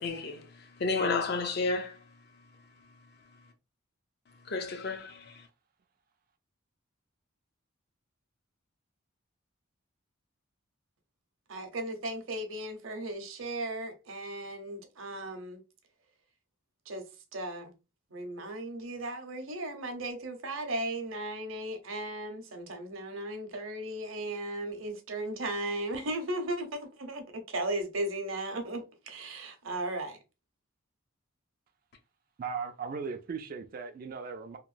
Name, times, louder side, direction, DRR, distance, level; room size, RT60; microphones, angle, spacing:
voice 1, 0.0-2.0 4.4-5.5, left 3 dB, 50° left, 0.5 m, -32 dB
voice 2, 11.5-15.6 16.9-17.1 17.3-17.7 18.1-30.2, right 1 dB, 70° right, 0.7 m, -36 dB
voice 3, 32.4-34.6, right 5 dB, 45° right, 0.3 m, -37 dB
2.9 x 2.2 x 2.5 m
head